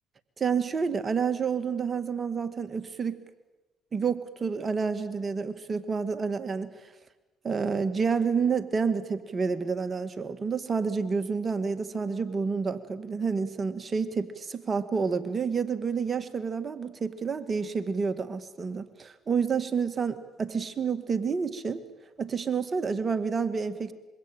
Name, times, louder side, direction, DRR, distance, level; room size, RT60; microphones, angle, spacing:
voice 1, 0.4-3.2 3.9-6.9 7.4-21.8 22.2-23.9, right 5 dB, 40° right, 10 dB, 1.9 m, -29 dB
25.5 x 23.5 x 9.2 m, 1.1 s
supercardioid pair, 65°, 0 cm